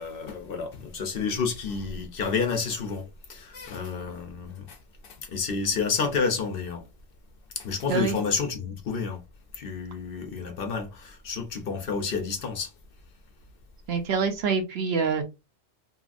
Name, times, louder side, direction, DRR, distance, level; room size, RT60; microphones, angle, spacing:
voice 1, 0.0-4.8 5.0-6.8 7.6-9.2 9.5-12.7, left 5 dB, 60° left, 0.7 m, -30 dB
voice 2, 13.9-15.2, right 5 dB, 65° right, 0.8 m, -25 dB
2.8 x 2.4 x 2.4 m
omnidirectional pair, 1.2 m